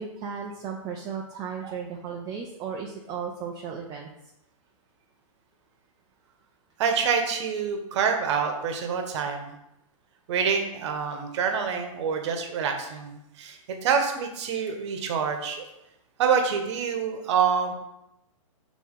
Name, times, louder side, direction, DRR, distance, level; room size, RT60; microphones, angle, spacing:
voice 1, 0.0-4.1, right 6 dB, 20° right, 1 dB, 0.6 m, -35 dB
voice 2, 6.8-9.5 10.3-15.6 16.2-17.7, right 6 dB, 55° right, 5 dB, 1.2 m, -26 dB
6.4 x 3.9 x 3.8 m, 0.85 s
hypercardioid pair, 140°, 18 cm